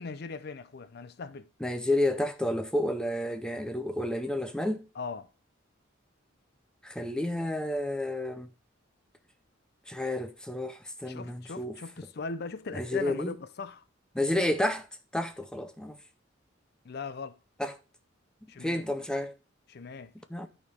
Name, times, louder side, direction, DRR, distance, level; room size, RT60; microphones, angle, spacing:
voice 1, 0.0-1.5 5.0-5.3 11.1-13.8 16.8-17.4 18.5-18.8 19.7-20.1, left 4 dB, 55° left, 0.5 m, -39 dB
voice 2, 1.6-4.9 6.8-8.5 9.9-11.8 12.7-13.3 14.1-14.9 15.1-16.0 17.6-17.7 18.6-19.4 20.3-20.5, left 1 dB, 5° left, 0.6 m, -30 dB
12.5 x 4.3 x 3.5 m
head